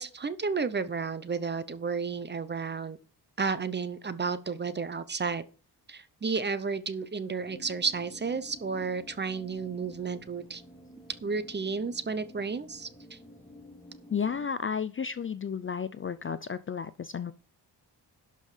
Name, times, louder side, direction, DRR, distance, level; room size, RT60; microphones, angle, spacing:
voice 1, 0.0-3.0 3.4-5.4 5.9-10.6 11.2-13.2, right 5 dB, 25° right, 0.7 m, -32 dB
sound 1, 7.4-14.5, equal, 10° left, 3.4 m, -51 dB
voice 2, 14.1-17.3, left 6 dB, 30° left, 0.4 m, -32 dB
12.0 x 5.5 x 5.0 m
wide cardioid pair, 155°, 42 cm